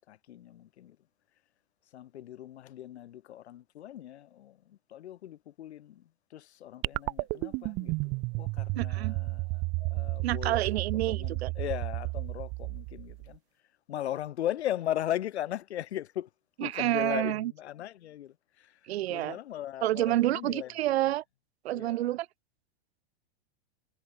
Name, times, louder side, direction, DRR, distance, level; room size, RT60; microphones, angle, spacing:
voice 1, 0.1-1.0 1.9-10.6 11.1-13.4 13.9-16.3 16.6-18.8 19.1-20.7 21.7-22.1, left 12 dB, 80° left, 3.1 m, -38 dB
sound 1, 6.8-13.3, right 28 dB, 25° right, 0.4 m, -32 dB
voice 2, 8.8-9.1 10.2-11.5 16.6-17.5 18.9-19.4 19.8-21.2 21.6-22.3, right 15 dB, 70° right, 1.0 m, -29 dB
supercardioid pair, 150°, 32 cm